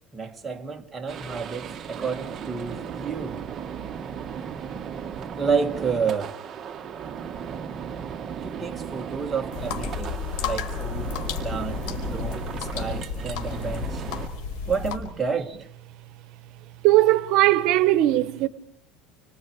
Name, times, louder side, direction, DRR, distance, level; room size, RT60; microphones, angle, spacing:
voice 1, 0.1-3.5 5.4-6.3 8.4-11.1 11.4-11.8 12.1-14.0 14.7-15.6, right 5 dB, 15° right, 1.9 m, -30 dB
sound 1, 1.1-14.3, right 7 dB, 30° right, 1.4 m, -36 dB
sound 2, 9.5-15.0, left 6 dB, 80° left, 4.6 m, -32 dB
voice 2, 16.8-18.5, right 16 dB, 65° right, 1.1 m, -19 dB
29.5 x 25.0 x 4.7 m
cardioid pair, 145°, 0 cm